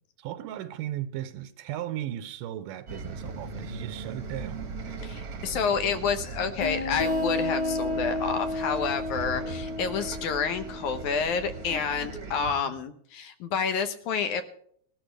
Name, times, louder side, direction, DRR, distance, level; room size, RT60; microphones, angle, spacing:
voice 1, 0.2-4.7 12.4-12.8, right 12 dB, 80° right, 2.3 m, -36 dB
Bus, 2.9-12.5, right 4 dB, 45° right, 1.2 m, -39 dB
voice 2, 5.0-14.4, left 6 dB, 70° left, 2.2 m, -29 dB
sound 1, 6.6-12.0, left 2 dB, 15° left, 1.2 m, -32 dB
20.0 x 12.5 x 3.3 m
omnidirectional pair, 4.0 m